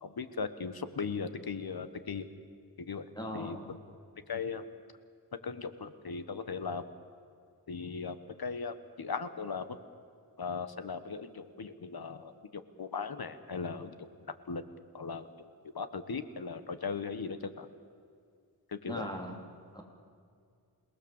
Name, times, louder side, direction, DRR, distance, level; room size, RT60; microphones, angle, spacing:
voice 1, 0.0-2.3 2.8-3.6 4.3-4.6 5.4-6.8 7.7-9.8 10.4-14.1 14.5-14.6 14.9-15.3 15.7-17.7 18.7-19.1, left 5 dB, 65° left, 11 dB, 1.3 m, -38 dB
voice 2, 3.1-3.7 18.9-19.4 19.7-19.8, equal, 10° left, 1 dB, 3.6 m, -39 dB
28.5 x 19.0 x 7.3 m, 2.3 s
wide cardioid pair, 105°, 40 cm